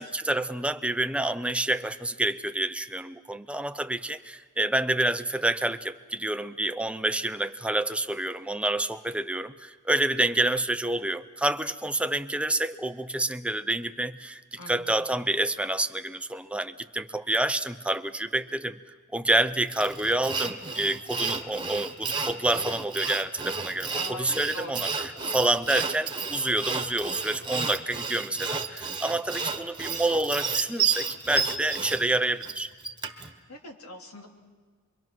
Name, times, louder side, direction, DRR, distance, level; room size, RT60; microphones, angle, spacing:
voice 1, 0.0-18.8 19.1-32.7, right 1 dB, 5° right, 10 dB, 0.6 m, -28 dB
voice 2, 14.6-14.9 24.0-24.9 33.5-34.3, left 1 dB, 80° left, 1 dB, 3.2 m, -42 dB
Sawing, 19.7-33.3, right 5 dB, 20° right, 1.4 m, -31 dB
27.0 x 23.5 x 6.1 m, 1.5 s
head